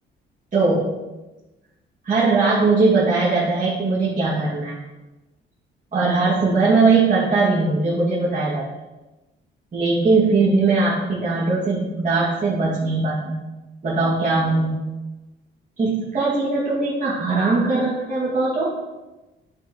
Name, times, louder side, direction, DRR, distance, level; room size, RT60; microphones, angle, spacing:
voice 1, 0.5-1.0 2.0-4.8 5.9-8.6 9.7-13.4 13.8-14.8 15.8-18.7, right 3 dB, 40° right, -9 dB, 2.7 m, -20 dB
9.7 x 4.3 x 4.5 m, 1.0 s
cardioid pair, 90°, 20 cm